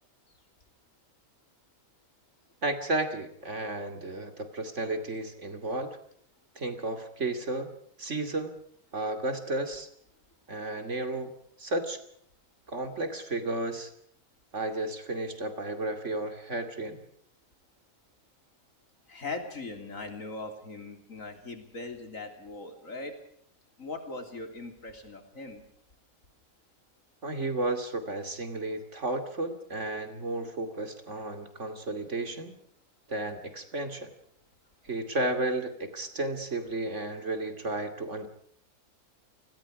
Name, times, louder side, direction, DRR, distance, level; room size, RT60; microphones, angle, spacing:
voice 1, 2.6-6.0 6.5-8.5 8.9-9.9 10.5-11.3 11.6-12.0 12.7-13.9 14.5-17.0 27.2-32.5 33.1-34.1 34.8-38.3, right 2 dB, 50° right, 7 dB, 2.9 m, -33 dB
voice 2, 19.1-23.2 23.8-25.6, left 3 dB, 60° left, 5 dB, 3.7 m, -40 dB
29.5 x 20.0 x 4.9 m, 0.66 s
omnidirectional pair, 1.6 m